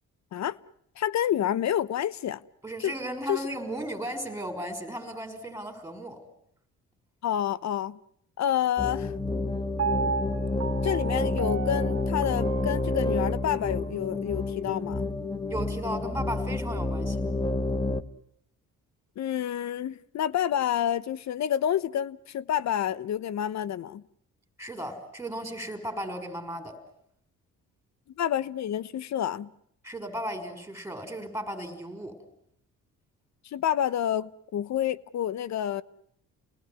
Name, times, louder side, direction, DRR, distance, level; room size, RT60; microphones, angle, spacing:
voice 1, 1.0-2.4 2.8-2.9 3.3-3.4 7.2-8.0 8.4-9.1 10.8-15.1 19.2-24.0 28.2-29.5 33.5-35.8, left 10 dB, 65° left, 1.0 m, -28 dB
voice 2, 2.6-6.2 15.5-17.2 24.6-26.8 29.8-32.2, right 1 dB, 5° right, 5.8 m, -35 dB
sound 1, 8.8-18.0, left 2 dB, 15° left, 1.4 m, -29 dB
Piano, 9.8-13.9 14.4-14.5, right 5 dB, 55° right, 2.5 m, -34 dB
29.0 x 19.5 x 9.7 m
cardioid pair, 90°, 30 cm